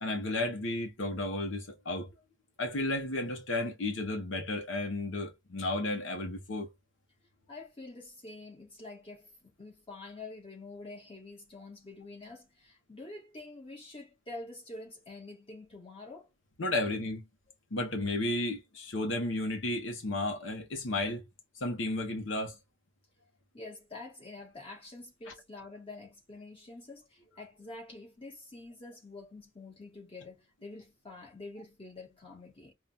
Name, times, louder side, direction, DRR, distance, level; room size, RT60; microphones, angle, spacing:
voice 1, 0.0-2.1 2.6-6.7 16.6-17.2 17.7-21.2 21.5-22.6, left 2 dB, 75° left, 0.9 m, -33 dB
voice 2, 7.5-16.3 23.5-32.7, left 2 dB, 30° left, 1.8 m, -47 dB
5.5 x 2.3 x 2.3 m
head